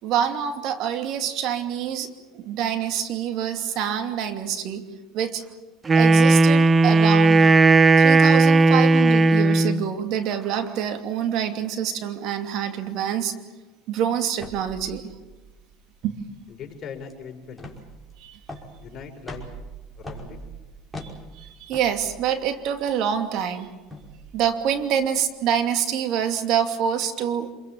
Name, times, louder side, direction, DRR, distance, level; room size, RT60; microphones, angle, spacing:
voice 1, 0.0-4.8 5.1-5.4 5.9-7.5 8.0-13.3 13.9-15.0 16.0-16.1 18.2-18.4 21.0-21.1 21.3-23.7 24.3-27.5, right 8 dB, 60° right, 7 dB, 2.7 m, -26 dB
Wind instrument woodwind instrument, 5.9-9.9, right 3 dB, 25° right, 0.9 m, -16 dB
sound 1, 14.3-25.6, right 1 dB, ahead, 5.4 m, -43 dB
voice 2, 16.5-17.8 18.8-19.5 20.0-20.4, left 7 dB, 45° left, 1 dB, 5.4 m, -40 dB
27.5 x 22.0 x 7.5 m, 1.2 s
supercardioid pair, 105°, 0 cm